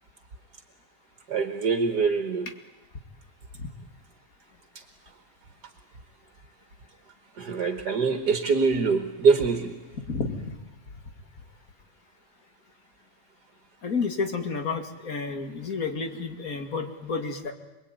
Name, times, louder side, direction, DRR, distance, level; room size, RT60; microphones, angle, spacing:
voice 1, 1.3-2.5 4.8-4.9 7.4-9.8, right 5 dB, 70° right, 7 dB, 2.0 m, -24 dB
voice 2, 10.1-10.4 13.8-17.5, left 4 dB, 55° left, 5 dB, 2.7 m, -30 dB
27.5 x 21.0 x 9.4 m, 1.1 s
omnidirectional pair, 1.8 m